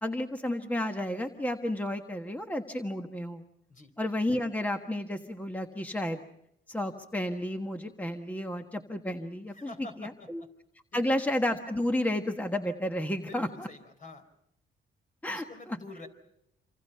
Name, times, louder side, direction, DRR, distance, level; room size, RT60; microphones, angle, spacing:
voice 1, 0.0-3.4 4.0-6.2 6.7-9.7 10.0-10.4 10.9-13.7 15.2-15.4, left 1 dB, 10° left, 5 dB, 1.4 m, -31 dB
voice 2, 9.5-10.5 10.9-11.0 13.2-14.2 15.3-16.1, left 2 dB, 40° left, 7 dB, 4.5 m, -47 dB
27.5 x 25.5 x 5.7 m, 0.80 s
cardioid pair, 90°, 20 cm